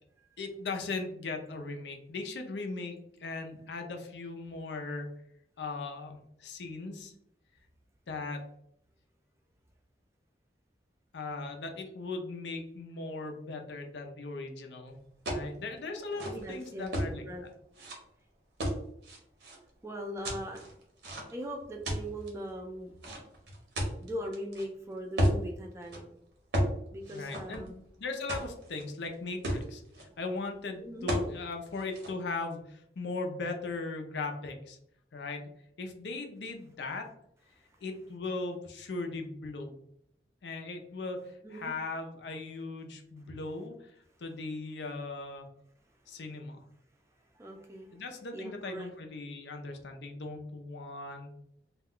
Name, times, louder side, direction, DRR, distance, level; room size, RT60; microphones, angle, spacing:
voice 1, 0.4-5.1 5.6-7.1 8.1-8.4 11.1-15.0 15.3-17.2 27.1-29.8 30.2-34.8 35.1-35.4 35.8-37.1 37.8-39.8 40.4-41.2 41.5-43.9 44.2-45.5 46.1-46.6 47.9-51.3, left 3 dB, 85° left, 4 dB, 0.5 m, -38 dB
sound 1, 15.2-15.5 16.0-17.1 17.7-17.9 18.6-19.6 20.2-21.4 21.8-22.3 23.0-24.6 25.2-25.4 25.8-26.0 26.5-26.8 27.0-27.9 28.3-28.8 29.1-29.2 29.4-30.0 31.1-31.3 31.7-32.1, equal, 90° right, 0.8 m, -32 dB
voice 2, 16.3-17.5 19.8-20.6 21.3-22.9 24.0-26.0 26.9-27.8 30.8-31.1 36.9-37.0 37.4-38.1 38.4-38.5 41.2-41.9 43.2-43.6 44.1-44.3 45.9-46.5 47.1-48.9, equal, 15° right, 2 dB, 0.4 m, -41 dB
2.3 x 2.2 x 3.5 m, 0.73 s
head